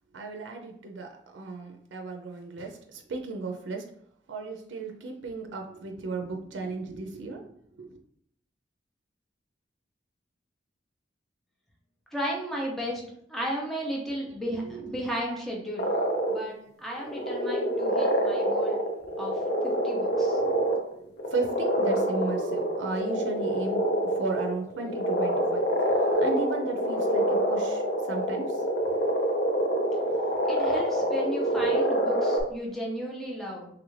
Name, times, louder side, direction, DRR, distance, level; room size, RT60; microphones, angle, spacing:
voice 1, 0.1-3.9 4.3-7.5 7.8-8.0 14.6-14.9 15.3-15.4 20.4-25.6 26.2-29.0 30.1-30.2, right 3 dB, 90° right, 3 dB, 0.4 m, -35 dB
voice 2, 12.1-13.0 13.3-15.9 16.3-18.8 19.2-20.4 30.5-33.7, equal, ahead, -3 dB, 0.6 m, -34 dB
sound 1, 15.8-16.4 17.0-20.9 21.2-32.4, equal, 60° left, 0.6 m, -26 dB
3.3 x 2.4 x 3.1 m, 0.68 s
head